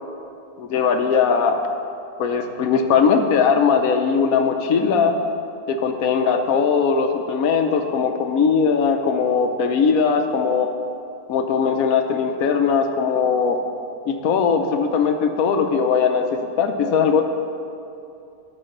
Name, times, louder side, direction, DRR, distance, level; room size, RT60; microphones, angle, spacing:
voice 1, 0.6-1.6 2.2-5.1 5.7-10.7 11.3-13.6 14.1-17.3, left 6 dB, 65° left, 5 dB, 1.2 m, -19 dB
12.0 x 4.6 x 6.5 m, 2.6 s
omnidirectional pair, 1.7 m